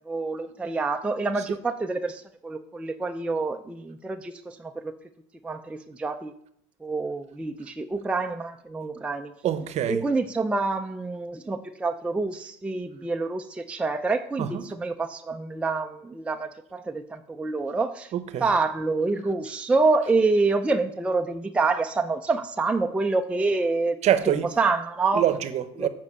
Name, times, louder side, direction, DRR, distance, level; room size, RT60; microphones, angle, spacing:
voice 1, 0.1-4.9 5.4-6.3 6.8-9.3 9.9-18.1 18.4-24.0 24.6-25.2 25.8-25.9, right 3 dB, 5° right, 0.4 m, -27 dB
voice 2, 9.4-10.0 14.4-14.6 18.1-18.5 24.0-24.5 25.1-25.9, right 10 dB, 45° right, 0.8 m, -25 dB
7.1 x 5.3 x 6.8 m
supercardioid pair, 105°, 16 cm